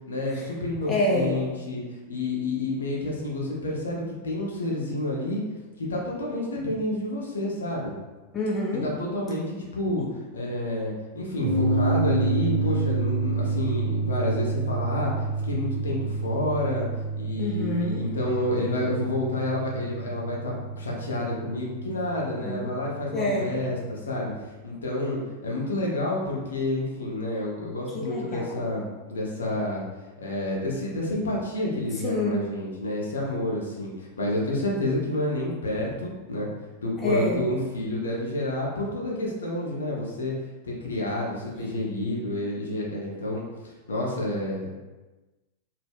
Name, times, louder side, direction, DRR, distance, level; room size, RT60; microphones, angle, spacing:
voice 1, 0.1-1.8 2.1-5.4 5.8-7.9 8.8-10.1 10.3-15.1 15.4-16.9 17.1-24.3 24.6-29.8 30.2-36.5 36.8-40.3 40.6-43.4 43.9-44.8, left 1 dB, 70° left, -3 dB, 0.6 m, -29 dB
voice 2, 0.8-1.4 8.3-8.9 17.4-18.1 22.3-22.7 23.1-23.6 27.9-28.6 32.0-32.5 37.0-37.4, left 1 dB, 20° left, -3 dB, 0.4 m, -27 dB
sound 1, 11.4-24.3, right 3 dB, 30° right, 0.7 m, -29 dB
2.1 x 2.0 x 3.4 m, 1.2 s
figure-of-eight pair, 90°, 0 cm